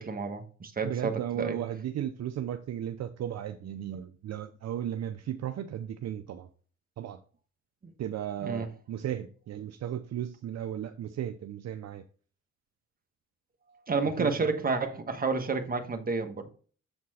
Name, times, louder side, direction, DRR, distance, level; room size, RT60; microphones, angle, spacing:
voice 1, 0.0-1.6 8.4-8.7 13.9-16.5, right 4 dB, 30° right, 1.4 m, -30 dB
voice 2, 0.8-6.5 7.0-7.2 8.0-12.0 14.2-14.5, right 10 dB, 60° right, 0.6 m, -35 dB
7.5 x 4.4 x 4.2 m
cardioid pair, 90°, 30 cm